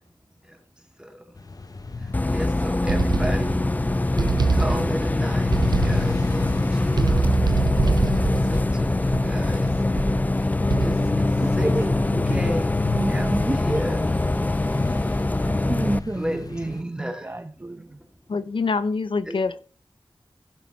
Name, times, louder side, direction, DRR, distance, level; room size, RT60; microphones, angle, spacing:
sound 1, 1.4-16.8, left 4 dB, 45° left, 0.9 m, -31 dB
Bus, 2.1-16.0, left 2 dB, 20° left, 0.4 m, -23 dB
voice 1, 2.3-3.6 4.1-7.3 8.2-9.7 10.3-11.3 11.5-11.7 12.3-12.7 13.1-14.0 16.1-17.3 19.3-19.4, equal, 10° right, 2.3 m, -33 dB
sound 2, 2.9-3.7 4.2-5.1 5.5-6.3 6.9-9.5 10.0-10.3 10.7-11.2, right 4 dB, 50° right, 0.5 m, -25 dB
voice 2, 11.4-12.4 12.9-14.0 15.4-18.0, right 2 dB, 25° right, 0.8 m, -29 dB
voice 3, 18.3-19.6, left 4 dB, 75° left, 0.6 m, -25 dB
16.5 x 7.1 x 3.0 m
wide cardioid pair, 85°, 9 cm